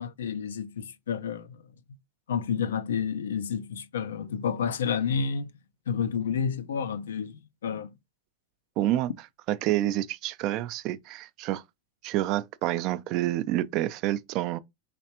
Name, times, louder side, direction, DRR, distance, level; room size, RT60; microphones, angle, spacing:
voice 1, 0.0-1.6 2.3-5.5 5.9-7.9, left 7 dB, 90° left, 0.4 m, -30 dB
voice 2, 8.8-9.1 9.5-11.6 12.0-14.6, right 14 dB, 50° right, 0.3 m, -28 dB
3.3 x 3.1 x 2.9 m
hypercardioid pair, 110°, 0 cm